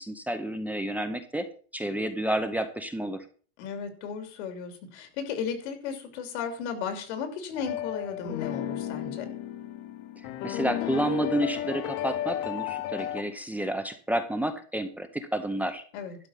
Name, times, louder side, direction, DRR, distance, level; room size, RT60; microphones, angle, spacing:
voice 1, 0.0-1.5 1.7-3.2 10.4-15.8, right 1 dB, 5° right, 8 dB, 0.6 m, -30 dB
voice 2, 3.6-9.3 15.9-16.2, left 6 dB, 85° left, 7 dB, 3.0 m, -35 dB
sound 1, 7.5-13.2, left 12 dB, 55° left, 1.2 m, -33 dB
12.0 x 5.4 x 7.5 m, 0.42 s
cardioid pair, 160°, 34 cm